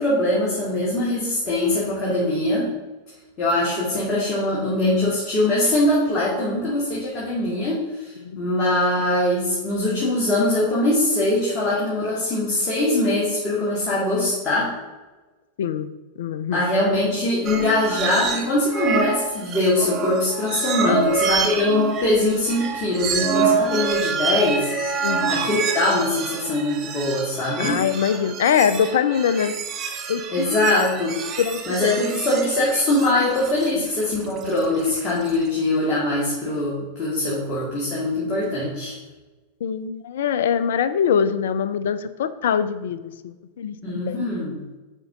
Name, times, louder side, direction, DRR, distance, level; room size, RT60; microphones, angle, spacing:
voice 1, 0.0-2.7 3.4-14.7 16.5-27.8 30.3-31.2 31.7-39.0 43.8-44.6, left 1 dB, 30° left, -7 dB, 2.0 m, -22 dB
voice 2, 15.6-15.9 16.2-16.6 20.8-21.2 25.0-25.4 27.6-29.5 30.1-30.7 31.4-31.9 39.6-44.2, left 8 dB, 60° left, 13 dB, 0.5 m, -23 dB
sound 1, 17.4-18.4 18.7-35.4, right 5 dB, 30° right, 0.8 m, -27 dB
8.9 x 4.5 x 3.7 m, 1.2 s
figure-of-eight pair, 90°, 0 cm